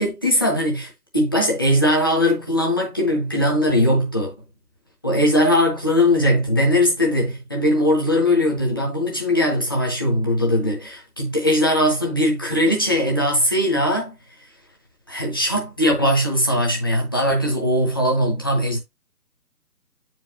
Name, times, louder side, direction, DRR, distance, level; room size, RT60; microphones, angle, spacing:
voice 1, 0.0-4.3 5.0-14.2 15.1-18.8, equal, 15° left, 0.9 m, -20 dB
8.6 x 4.6 x 2.8 m
figure-of-eight pair, 160°, 47 cm